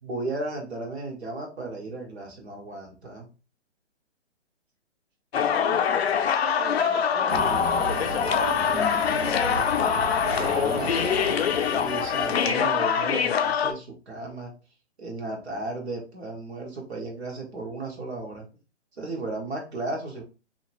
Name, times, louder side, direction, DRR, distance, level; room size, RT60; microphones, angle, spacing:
voice 1, 0.0-3.3 8.6-10.0 10.6-14.5 15.0-18.5 19.0-20.2, right 2 dB, 60° right, 1 dB, 1.4 m, -35 dB
sound 1, 5.3-13.7, left 7 dB, 60° left, 0.4 m, -24 dB
voice 2, 5.4-6.0 6.4-7.6 20.2-20.3, right 5 dB, 45° right, -2 dB, 0.8 m, -40 dB
sound 2, 7.3-12.5, right 3 dB, 90° right, 1.2 m, -34 dB
2.9 x 2.8 x 2.9 m, 0.33 s
figure-of-eight pair, 140°, 36 cm